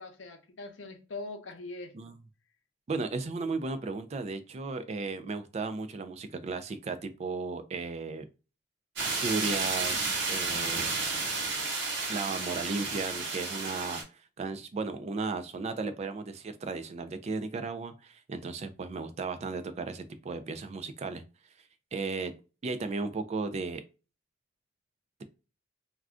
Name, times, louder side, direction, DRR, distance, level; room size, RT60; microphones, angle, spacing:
voice 1, 0.0-2.1, left 2 dB, 90° left, 0.7 m, -42 dB
voice 2, 2.9-8.3 9.0-10.9 12.1-14.0 14.4-21.2 21.9-22.3 22.6-23.8, right 3 dB, 35° right, 0.3 m, -35 dB
sound 1, 9.0-14.0, right 3 dB, 70° right, 1.0 m, -32 dB
2.4 x 2.2 x 3.5 m
head